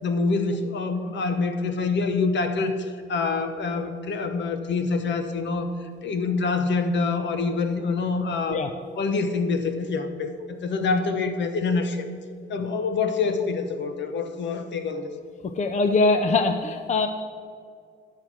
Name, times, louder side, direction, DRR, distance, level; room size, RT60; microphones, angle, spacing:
voice 1, 0.0-8.6 9.0-12.1 12.5-15.1, left 4 dB, 65° left, 7 dB, 1.1 m, -26 dB
voice 2, 15.6-17.1, left 3 dB, 35° left, 7 dB, 0.6 m, -22 dB
11.5 x 6.6 x 6.0 m, 2.2 s
cardioid pair, 90°, 20 cm